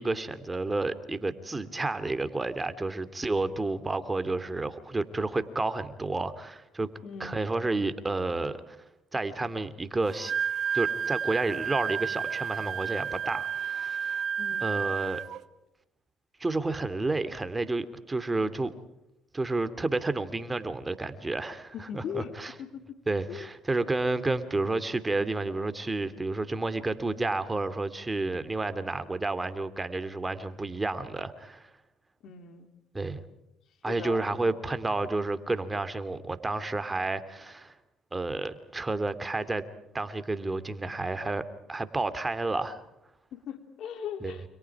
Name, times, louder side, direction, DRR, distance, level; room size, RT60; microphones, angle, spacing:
voice 1, 0.0-6.9 7.2-8.8 9.1-10.3 10.7-14.2 14.6-15.2 16.4-18.7 19.3-22.5 23.1-31.7 32.9-33.2 33.8-37.7 38.1-39.6 39.9-42.8 44.2-44.4, right 2 dB, 20° right, 11 dB, 2.7 m, -30 dB
voice 2, 7.0-7.4 14.4-14.6 21.7-22.3 22.6-23.0 23.3-23.5 32.2-32.7 33.9-34.5 43.3-44.4, left 7 dB, 65° left, 8 dB, 3.5 m, -39 dB
Wind instrument woodwind instrument, 10.1-15.4, right 7 dB, 60° right, 1.5 m, -31 dB
30.0 x 27.0 x 4.9 m, 0.85 s
supercardioid pair, 75°, 0 cm